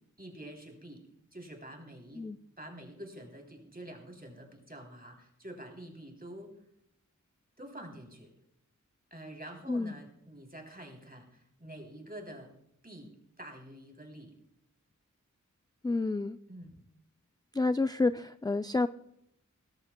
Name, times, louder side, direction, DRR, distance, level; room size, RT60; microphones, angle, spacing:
voice 1, 0.2-1.0 1.3-2.2 2.6-6.6 7.6-8.3 9.1-12.5 12.8-14.3 16.5-16.8, right 1 dB, 30° right, 2 dB, 3.2 m, -47 dB
voice 2, 15.8-16.4 17.5-18.9, left 3 dB, 15° left, 11 dB, 0.3 m, -29 dB
17.5 x 14.0 x 2.2 m, 0.79 s
wide cardioid pair, 45°, 31 cm